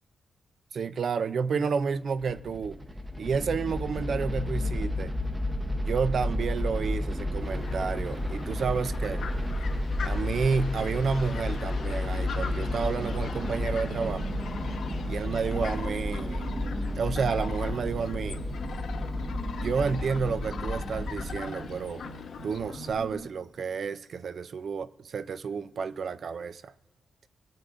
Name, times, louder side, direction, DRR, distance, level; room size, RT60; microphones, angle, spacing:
voice 1, 0.7-2.8 3.2-5.1 5.9-9.2 10.0-14.3 15.0-16.5 16.9-18.4 19.6-22.1 22.4-26.7, right 5 dB, 50° right, 0.4 m, -30 dB
sound 1, 2.0-21.4, left 1 dB, 10° right, 0.8 m, -32 dB
Fowl, 7.4-22.9, left 6 dB, 70° left, 1.1 m, -41 dB
sound 2, 12.4-23.3, right 3 dB, 65° right, 1.5 m, -43 dB
25.0 x 9.4 x 2.5 m
wide cardioid pair, 175°, 0 cm